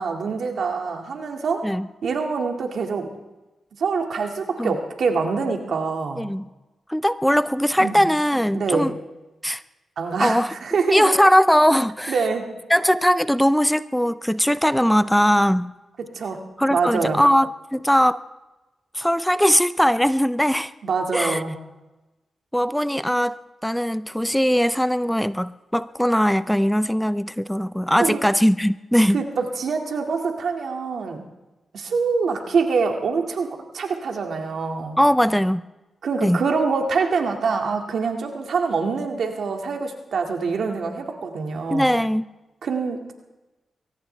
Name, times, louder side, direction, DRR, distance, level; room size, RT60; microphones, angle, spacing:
voice 1, 0.0-1.6 2.0-3.1 3.8-6.3 7.8-8.0 8.5-8.9 10.0-11.1 12.1-12.5 16.1-16.4 16.7-17.2 20.8-21.6 28.0-28.2 29.1-31.2 31.7-33.5 33.7-35.0 36.0-41.9 42.6-43.1, right 5 dB, 75° right, 3 dB, 2.2 m, -25 dB
voice 2, 6.9-8.9 9.4-9.6 10.2-10.5 10.9-12.1 12.7-15.7 16.6-18.2 18.9-20.7 21.1-21.4 22.5-29.2 35.0-35.6 36.2-36.5 41.7-42.3, equal, 5° left, 15 dB, 0.5 m, -20 dB
23.0 x 17.5 x 3.4 m, 1.1 s
cardioid pair, 65°, 0 cm